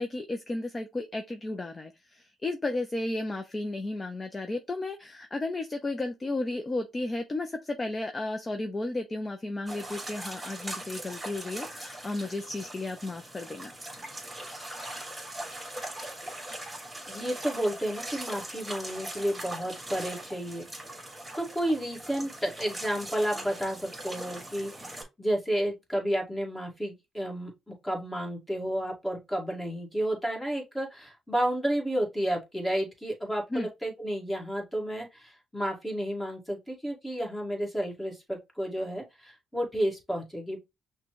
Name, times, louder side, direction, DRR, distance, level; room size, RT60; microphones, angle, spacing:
voice 1, 0.0-13.7 33.5-33.7, left 2 dB, 25° left, 0.6 m, -33 dB
sound 1, 9.7-25.0, right 1 dB, 10° right, 2.2 m, -41 dB
voice 2, 17.1-20.6 21.4-40.6, right 1 dB, 10° left, 1.9 m, -31 dB
5.8 x 2.3 x 3.1 m
cardioid pair, 90°, 0 cm